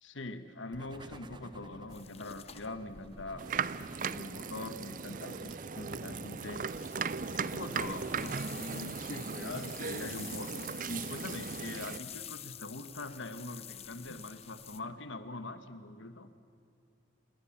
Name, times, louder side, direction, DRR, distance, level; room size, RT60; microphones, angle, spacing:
voice 1, 0.0-3.5 3.8-6.7 7.5-16.3, left 2 dB, 85° left, 10 dB, 1.3 m, -43 dB
sound 1, 0.7-10.5, right 1 dB, 25° right, 1.0 m, -53 dB
sound 2, 1.9-4.2 6.4-14.8, left 9 dB, 30° left, 0.8 m, -49 dB
sound 3, 3.4-12.0, right 6 dB, 45° right, 0.5 m, -38 dB
27.5 x 20.5 x 7.3 m, 2.5 s
head